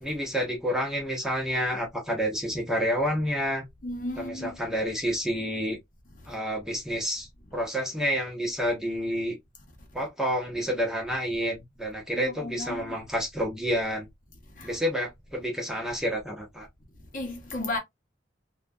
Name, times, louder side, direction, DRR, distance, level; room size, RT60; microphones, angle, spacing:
voice 1, 0.0-3.6 4.2-5.8 6.3-9.4 9.9-14.1 14.6-16.7, equal, 5° right, 0.7 m, -29 dB
voice 2, 3.8-4.6 12.2-13.0 14.6-14.7 17.1-17.8, left 2 dB, 45° left, 0.8 m, -34 dB
2.7 x 2.2 x 2.5 m
head